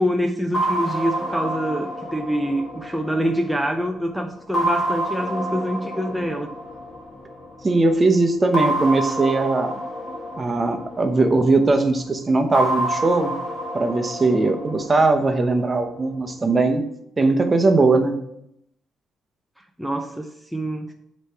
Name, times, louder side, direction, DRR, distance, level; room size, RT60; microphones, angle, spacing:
voice 1, 0.0-6.5 19.8-20.9, equal, ahead, 0.5 m, -25 dB
sound 1, 0.5-3.9 4.5-7.5 8.5-11.7 12.5-15.7, right 1 dB, 40° left, 1.8 m, -28 dB
voice 2, 7.6-9.8 10.4-13.4 13.7-16.8 17.2-18.2, right 3 dB, 30° right, 0.9 m, -19 dB
8.0 x 3.2 x 5.6 m
cardioid pair, 90°, 0 cm